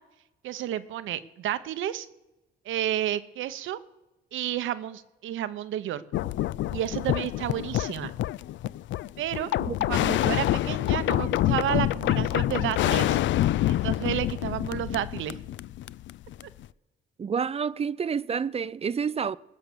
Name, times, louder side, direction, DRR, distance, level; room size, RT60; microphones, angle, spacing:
voice 1, 0.4-2.1 2.6-3.8 4.3-6.0 6.7-8.1 9.2-9.5 9.9-13.2 13.7-15.4, right 12 dB, 80° right, 0.9 m, -31 dB
sound 1, 6.1-16.6, left 14 dB, 70° left, 0.4 m, -27 dB
voice 2, 9.6-10.1 17.2-19.4, right 6 dB, 30° right, 0.5 m, -29 dB
20.5 x 6.8 x 6.9 m
cardioid pair, 90°, 20 cm